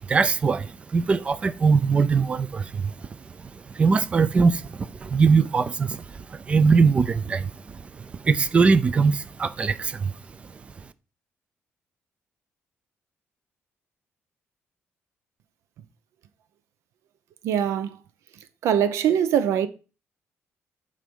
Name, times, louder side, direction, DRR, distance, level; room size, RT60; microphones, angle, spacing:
voice 1, 0.1-2.9 3.4-3.5 3.7-10.1, right 5 dB, 25° right, 0.4 m, -21 dB
voice 2, 17.4-18.0 18.6-19.7, right 9 dB, 85° right, 0.7 m, -22 dB
7.8 x 4.9 x 5.4 m
cardioid pair, 175°, 5 cm